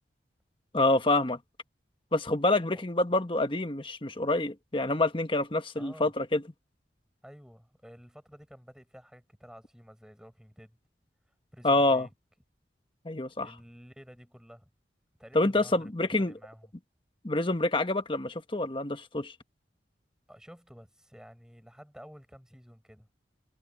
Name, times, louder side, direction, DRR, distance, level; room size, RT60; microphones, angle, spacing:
voice 1, 0.7-1.4 2.1-6.4 11.6-12.1 13.0-13.5 15.3-16.3 17.2-19.3, left 2 dB, 30° left, 1.4 m, -27 dB
voice 2, 5.7-6.1 7.2-10.8 11.5-12.1 13.4-14.7 15.2-16.7 20.3-23.1, equal, 5° right, 7.9 m, -51 dB
head